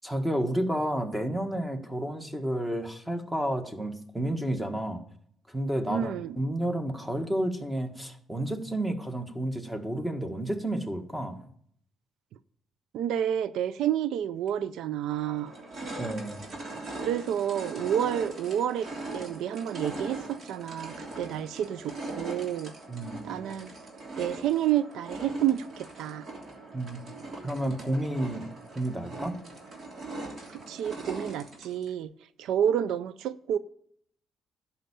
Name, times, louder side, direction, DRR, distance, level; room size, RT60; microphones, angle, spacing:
voice 1, 0.0-5.0 5.5-11.4 16.0-16.4 22.9-23.3 26.7-27.0 27.4-28.5 28.7-29.4, right 1 dB, 10° right, 1.6 m, -31 dB
voice 2, 5.9-6.4 12.9-15.5 17.0-18.9 19.1-22.7 23.2-23.7 24.2-26.3 30.5-32.1 32.4-33.6, right 10 dB, 85° right, 0.4 m, -29 dB
sound 1, 14.5-14.6 15.1-31.9, right 2 dB, 50° right, 3.0 m, -40 dB
11.5 x 5.7 x 8.6 m
cardioid pair, 90°, 0 cm